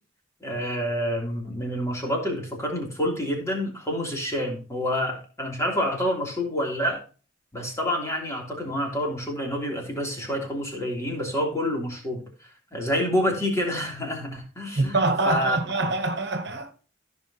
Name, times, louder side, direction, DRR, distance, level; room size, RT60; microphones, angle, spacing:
voice 1, 0.4-7.0 7.5-15.6, equal, 15° left, 3.0 m, -28 dB
voice 2, 14.8-16.7, right 2 dB, 60° right, 1.4 m, -25 dB
15.0 x 5.9 x 2.8 m
head